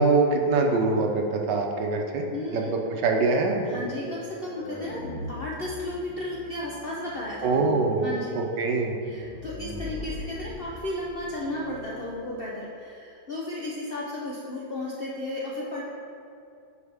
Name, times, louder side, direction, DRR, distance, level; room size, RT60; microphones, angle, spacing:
voice 1, 0.0-2.2 2.5-3.8 7.4-8.1 8.6-9.0, right 3 dB, 75° right, 2 dB, 1.4 m, -23 dB
voice 2, 2.3-2.7 3.6-8.4 9.0-15.8, left 1 dB, 60° left, -5 dB, 0.6 m, -34 dB
sound 1, 3.6-12.4, left 1 dB, 80° left, 2.1 m, -41 dB
9.5 x 4.7 x 3.5 m, 2.6 s
omnidirectional pair, 1.9 m